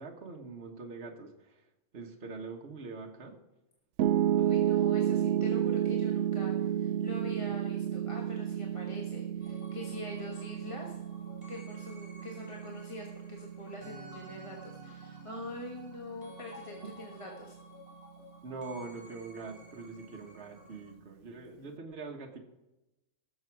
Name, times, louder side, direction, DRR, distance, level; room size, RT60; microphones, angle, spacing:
voice 1, 0.0-1.6 1.9-3.4 18.4-22.4, right 4 dB, 55° right, 1 dB, 1.5 m, -43 dB
Piano, 4.0-16.2, right 10 dB, 70° right, 0.9 m, -31 dB
voice 2, 4.3-10.9 11.5-17.6, left 1 dB, 25° left, -1 dB, 1.4 m, -44 dB
sound 1, 9.4-20.9, left 1 dB, 30° right, 4.8 m, -54 dB
18.0 x 7.0 x 4.7 m, 0.97 s
omnidirectional pair, 1.3 m